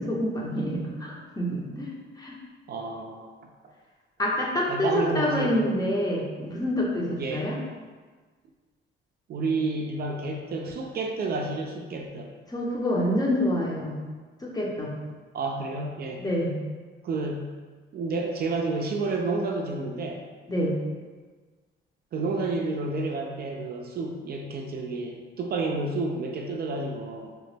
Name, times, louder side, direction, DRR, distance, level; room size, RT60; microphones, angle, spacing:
voice 1, 0.0-2.4 4.2-7.6 12.5-14.0 14.4-14.9 16.2-16.6 20.5-20.7, equal, 20° left, -3 dB, 0.6 m, -27 dB
voice 2, 2.7-3.3 4.7-5.8 7.2-7.5 9.3-12.3 15.3-16.2 17.0-17.5 17.9-20.2 22.1-27.3, right 3 dB, 50° right, 1 dB, 0.4 m, -30 dB
2.9 x 2.1 x 3.2 m, 1.4 s
cardioid pair, 90°, 20 cm